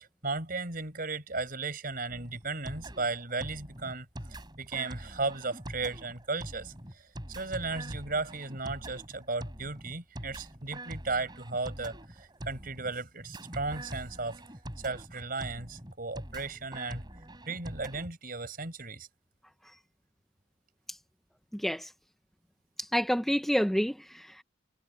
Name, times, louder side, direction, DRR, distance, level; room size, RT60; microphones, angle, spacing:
voice 1, 0.2-14.4 14.8-17.0 17.5-19.1, right 3 dB, 45° right, 5.1 m, -35 dB
sound 1, 2.1-18.1, right 1 dB, 20° right, 6.2 m, -44 dB
voice 2, 21.5-21.9 22.8-24.4, equal, ahead, 0.8 m, -29 dB
head